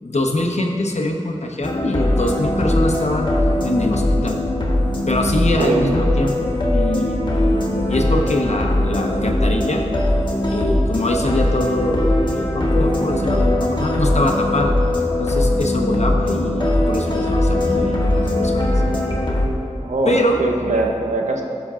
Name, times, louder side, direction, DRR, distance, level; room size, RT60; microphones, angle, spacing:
voice 1, 0.0-3.3 3.6-4.4 5.1-7.2 7.9-9.8 10.5-14.7 15.2-19.2 20.0-20.4, left 1 dB, 65° left, 2 dB, 1.0 m, -23 dB
sound 1, 1.6-19.5, left 1 dB, 40° left, 1.4 m, -20 dB
voice 2, 5.4-6.1 19.8-21.4, right 2 dB, 85° right, 1 dB, 0.9 m, -22 dB
16.0 x 6.1 x 2.5 m, 2.8 s
wide cardioid pair, 50°, 12 cm